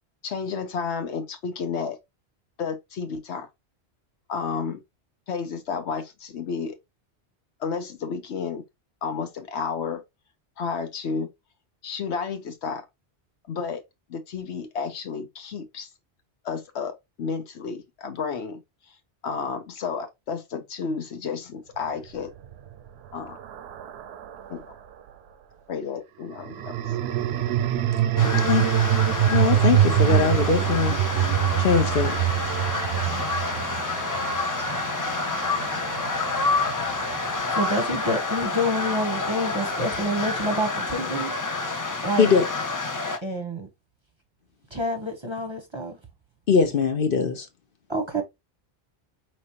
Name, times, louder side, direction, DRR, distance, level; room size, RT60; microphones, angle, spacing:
voice 1, 0.2-2.0 2.6-3.5 4.3-4.8 5.3-6.7 7.6-8.6 9.0-10.0 10.6-11.3 11.8-12.8 13.5-13.8 14.1-15.9 16.4-16.9 17.2-18.6 19.2-22.3 23.1-23.4 24.5-24.7 25.7-26.7 28.1-28.4, left 5 dB, 75° left, 1.1 m, -31 dB
sound 1, 22.2-24.7 26.3-38.6, right 11 dB, 70° right, 0.8 m, -25 dB
sound 2, 28.2-43.2, left 3 dB, 30° left, 0.3 m, -28 dB
voice 2, 29.3-31.0 31.6-32.2 42.2-42.4 46.5-47.5, left 6 dB, 55° left, 0.9 m, -21 dB
voice 3, 37.5-41.3 42.0-42.3 43.2-43.7 44.7-46.0 47.9-48.2, equal, 25° right, 0.9 m, -27 dB
5.1 x 3.0 x 2.8 m
omnidirectional pair, 1.2 m